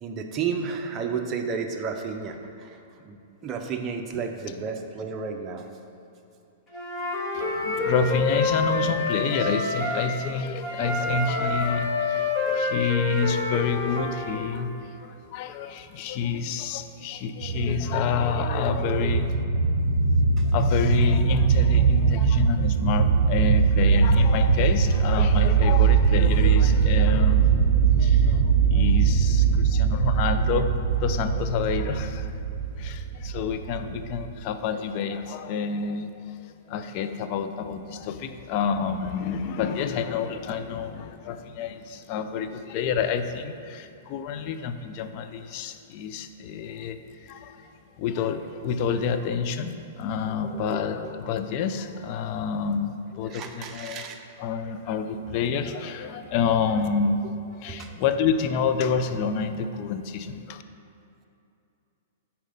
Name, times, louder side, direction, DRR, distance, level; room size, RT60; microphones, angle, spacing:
voice 1, 0.0-5.7 17.7-17.8 50.4-51.1 53.2-54.2 55.7-55.8 57.7-57.9, right 5 dB, 30° right, 4 dB, 0.8 m, -32 dB
Wind instrument woodwind instrument, 6.7-10.1 10.6-14.4, left 2 dB, 20° left, 1.8 m, -27 dB
voice 2, 7.3-19.3 20.4-27.7 28.0-32.3 32.8-36.3 36.7-47.7 48.0-54.1 54.4-57.2 57.6-60.6, left 6 dB, 45° left, 9 dB, 0.5 m, -28 dB
sound 1, 17.4-34.4, right 6 dB, 70° right, 0.4 m, -21 dB
9.2 x 4.3 x 5.4 m, 2.7 s
hypercardioid pair, 125°, 0 cm